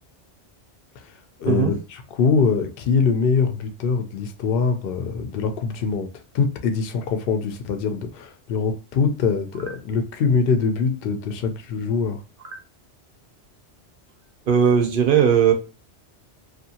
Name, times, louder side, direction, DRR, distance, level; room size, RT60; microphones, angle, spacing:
voice 1, 1.4-6.1 6.3-12.2, left 5 dB, 60° left, 0.7 m, -23 dB
voice 2, 14.5-15.5, right 8 dB, 55° right, 0.7 m, -18 dB
2.7 x 2.5 x 2.7 m
omnidirectional pair, 1.2 m